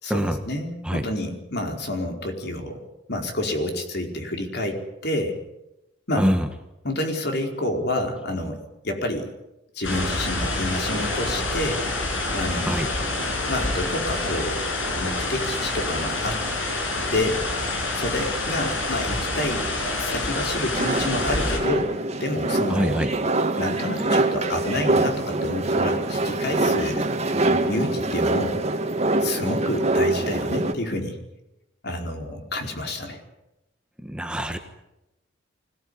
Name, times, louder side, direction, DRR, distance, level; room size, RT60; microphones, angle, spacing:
voice 1, 0.0-2.8 3.1-5.4 6.1-6.3 6.8-8.6 8.8-9.3 9.7-11.8 12.3-13.2 13.5-14.6 15.0-16.4 17.1-17.4 17.9-19.7 20.0-21.9 22.2-23.0 23.6-27.1 27.7-28.6 29.2-31.2 31.8-33.2, left 1 dB, 55° left, 3 dB, 4.7 m, -28 dB
voice 2, 6.2-6.5 12.7-12.9 22.7-23.1 34.0-34.6, equal, 5° right, 6 dB, 1.4 m, -24 dB
sound 1, 9.8-21.6, left 2 dB, 75° left, 6.7 m, -27 dB
sound 2, 20.7-30.7, right 2 dB, 35° right, 2.0 m, -24 dB
25.0 x 18.0 x 10.0 m, 0.93 s
head